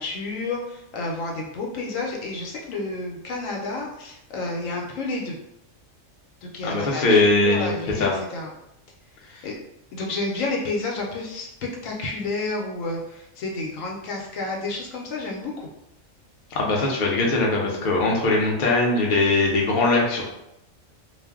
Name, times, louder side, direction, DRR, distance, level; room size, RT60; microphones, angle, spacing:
voice 1, 0.0-5.4 6.4-8.5 9.4-9.6 9.9-15.7, left 3 dB, 75° left, -1 dB, 1.0 m, -30 dB
voice 2, 6.6-7.7 8.0-8.1 16.5-20.3, left 2 dB, 50° left, -2 dB, 0.6 m, -21 dB
2.5 x 2.0 x 3.4 m, 0.84 s
omnidirectional pair, 1.4 m